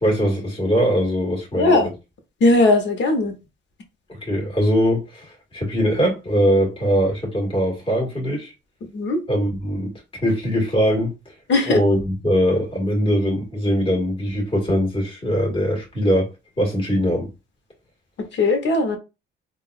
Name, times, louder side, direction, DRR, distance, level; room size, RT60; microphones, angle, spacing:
voice 1, 0.0-1.9 4.1-8.5 9.3-11.3 11.7-16.3 16.6-17.3, equal, 25° left, 1.8 m, -21 dB
voice 2, 1.6-1.9 2.4-3.4 8.9-9.2 11.5-11.8 18.3-19.0, left 2 dB, 65° left, 1.1 m, -18 dB
3.8 x 2.5 x 2.4 m
cardioid pair, 90°, 20 cm